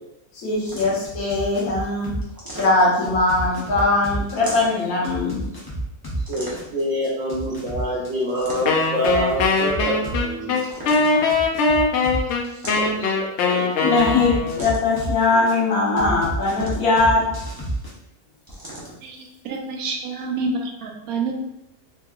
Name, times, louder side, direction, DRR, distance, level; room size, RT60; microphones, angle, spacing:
voice 1, 0.3-2.1 2.5-5.4 10.9-11.3 13.8-17.2, left 3 dB, 85° left, -4 dB, 1.4 m, -20 dB
sound 1, 0.6-1.2 2.2-3.1 4.3-4.9 6.3-6.9 8.2-9.0 10.6-11.3 12.4-13.2 14.5-15.1 16.4-17.1 18.5-19.0, right 1 dB, 25° right, 0.5 m, -37 dB
sound 2, 1.0-2.2 2.5-6.2 6.5-10.2 10.5-12.3 14.0-15.5 16.0-17.9, right 1 dB, 25° left, 0.5 m, -30 dB
voice 2, 6.3-10.6 12.7-13.7, equal, 60° right, -5 dB, 0.9 m, -26 dB
Wind instrument woodwind instrument, 8.7-14.7, left 3 dB, 65° left, 0.7 m, -21 dB
voice 3, 19.0-21.3, right 3 dB, 85° right, 2 dB, 1.1 m, -28 dB
3.6 x 2.7 x 2.4 m, 0.88 s
omnidirectional pair, 1.5 m